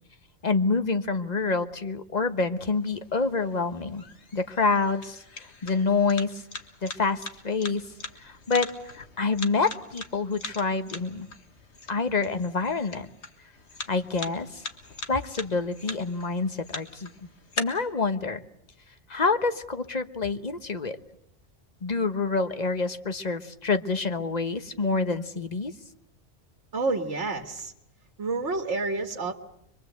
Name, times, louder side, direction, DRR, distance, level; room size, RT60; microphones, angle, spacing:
voice 1, 0.4-4.0 4.3-5.2 5.6-6.4 6.8-7.8 8.2-11.3 11.9-13.1 13.9-14.6 15.1-17.1 17.6-18.4 19.1-21.0 21.8-25.7, left 4 dB, 40° left, 9 dB, 1.3 m, -27 dB
sound 1, 2.6-17.6, left 3 dB, 75° left, 2.0 m, -42 dB
voice 2, 26.7-27.7 28.2-29.3, right 3 dB, 80° right, 5 dB, 2.0 m, -29 dB
24.5 x 23.5 x 8.0 m, 0.77 s
omnidirectional pair, 1.2 m